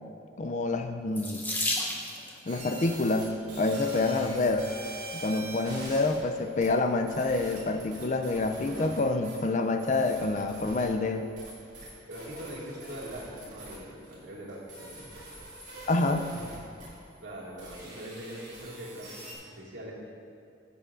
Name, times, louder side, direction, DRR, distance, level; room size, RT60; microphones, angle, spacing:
voice 1, 0.4-1.4 2.5-3.3 3.6-4.7 5.1-11.3 15.9-16.3, left 2 dB, 40° left, 7 dB, 0.4 m, -27 dB
Water tap faucet / Sink (filling or washing), 1.1-2.4 3.4-3.8 4.5-4.6 4.9-5.1, left 1 dB, 10° left, 0.7 m, -32 dB
sound 1, 2.5-19.4, right 1 dB, 40° right, 2.1 m, -45 dB
voice 2, 12.1-15.1 17.2-19.3 19.6-20.0, right 1 dB, 85° right, -5 dB, 2.1 m, -42 dB
15.0 x 6.9 x 2.5 m, 2.4 s
head